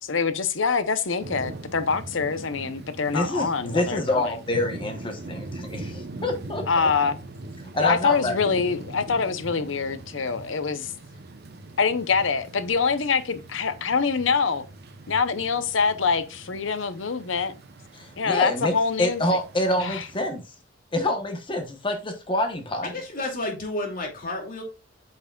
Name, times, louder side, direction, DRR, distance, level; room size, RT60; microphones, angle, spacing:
voice 1, 0.0-4.4 6.7-7.2 7.8-10.9 11.8-14.6 15.1-17.5 18.2-19.2 19.8-20.1, left 5 dB, 80° left, 0.8 m, -25 dB
sound 1, 1.2-20.3, right 2 dB, 60° right, 0.9 m, -41 dB
voice 2, 3.1-6.6 7.7-8.4 18.0-18.7 19.0-20.4 20.9-22.9, left 1 dB, 25° left, 1.1 m, -26 dB
voice 3, 22.8-24.6, left 2 dB, 50° left, 2.5 m, -31 dB
8.9 x 5.9 x 2.4 m
head